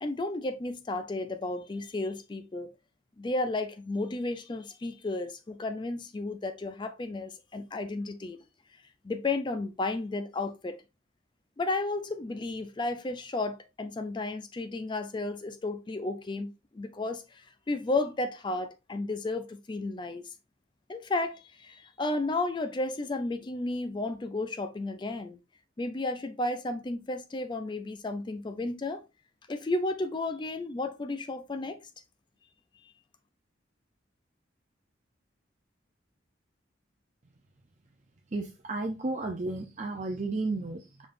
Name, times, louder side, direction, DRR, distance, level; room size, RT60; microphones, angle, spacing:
voice 1, 0.0-2.7 3.2-8.4 9.0-10.8 11.6-17.2 17.7-20.2 20.9-25.4 25.8-29.0 29.5-31.8, left 2 dB, 25° left, 0.4 m, -33 dB
voice 2, 38.3-41.1, right 2 dB, 40° right, 0.6 m, -33 dB
5.1 x 4.0 x 2.5 m
head